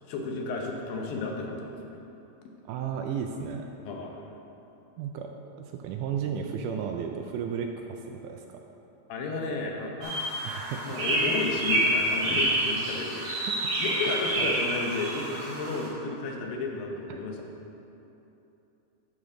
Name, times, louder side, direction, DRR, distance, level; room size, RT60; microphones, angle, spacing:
voice 1, 0.1-2.0 3.8-4.3 9.1-10.2 10.7-13.3 13.8-17.8, left 3 dB, 90° left, 1 dB, 2.7 m, -33 dB
voice 2, 2.7-3.7 5.0-5.3 5.6-8.4 10.5-10.8 13.6-13.7 14.4-14.5, right 7 dB, 80° right, 3 dB, 1.9 m, -33 dB
sound 1, 10.0-15.9, right 1 dB, 50° right, 2.3 m, -28 dB
11.0 x 6.5 x 3.8 m, 2.9 s
omnidirectional pair, 4.0 m